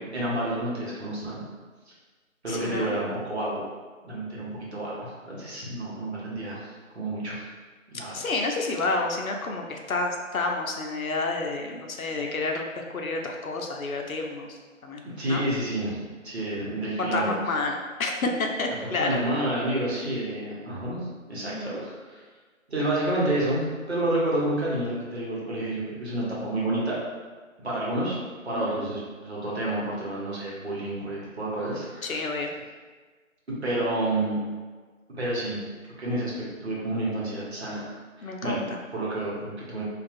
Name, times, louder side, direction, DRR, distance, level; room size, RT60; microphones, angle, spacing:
voice 1, 0.0-1.4 2.4-3.6 4.0-7.4 7.9-8.2 15.2-16.0 16.2-17.3 19.0-21.0 21.3-22.2 22.7-27.0 27.6-28.2 28.4-32.2 33.6-34.4 35.2-35.6 36.0-37.8 38.2-38.6 38.9-39.8, right 1 dB, 55° right, -6 dB, 0.9 m, -29 dB
voice 2, 2.5-3.0 8.1-15.4 17.0-19.1 21.4-21.8 28.6-28.8 32.0-32.5 38.2-38.8, left 3 dB, 90° left, 2 dB, 0.6 m, -30 dB
2.7 x 2.3 x 2.5 m, 1.4 s
figure-of-eight pair, 160°, 40 cm